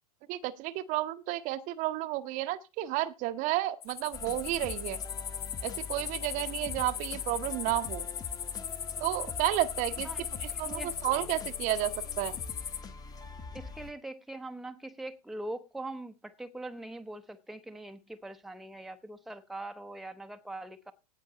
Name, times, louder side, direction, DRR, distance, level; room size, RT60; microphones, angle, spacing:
voice 1, 0.3-5.0 5.6-8.1 9.0-10.1 10.4-12.4, right 15 dB, 40° right, 1.0 m, -32 dB
sound 1, 3.8-12.8, left 9 dB, 65° left, 1.2 m, -38 dB
sound 2, 4.1-13.9, left 4 dB, 20° left, 1.3 m, -44 dB
voice 2, 10.5-10.9 13.5-20.9, right 2 dB, ahead, 0.9 m, -42 dB
17.0 x 5.7 x 4.0 m
figure-of-eight pair, 90°, 20 cm